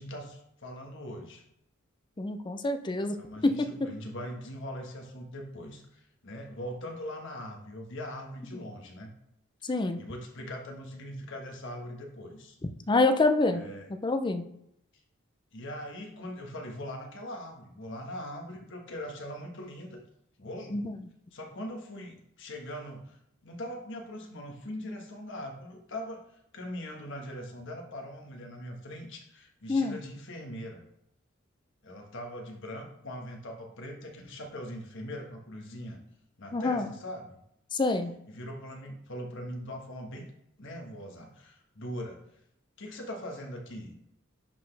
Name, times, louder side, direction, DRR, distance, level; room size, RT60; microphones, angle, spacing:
voice 1, 0.0-1.4 3.1-9.1 9.7-12.6 13.5-13.9 15.5-20.0 20.4-20.8 21.3-30.8 31.8-36.0 36.4-37.4 38.3-40.3 40.6-42.2 42.8-43.9, equal, 65° left, 2 dB, 1.3 m, -41 dB
voice 2, 2.2-3.2 3.4-3.7 9.6-10.0 12.9-13.6 14.0-14.4 20.7-20.9 29.7-30.0 36.5-36.9 37.7-38.1, left 2 dB, 20° left, 8 dB, 0.5 m, -26 dB
10.0 x 4.1 x 3.3 m, 0.76 s
head